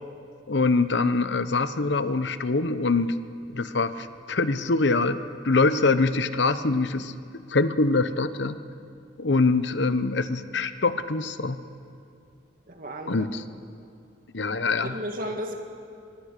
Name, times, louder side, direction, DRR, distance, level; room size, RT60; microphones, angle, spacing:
voice 1, 0.5-3.2 3.5-5.2 5.4-7.1 7.5-8.6 9.2-11.6 13.1-13.4 14.3-15.0, left 3 dB, 75° left, 12 dB, 0.9 m, -24 dB
voice 2, 12.7-13.3 14.9-15.5, equal, 50° right, 4 dB, 2.4 m, -34 dB
24.0 x 22.0 x 6.7 m, 2.6 s
head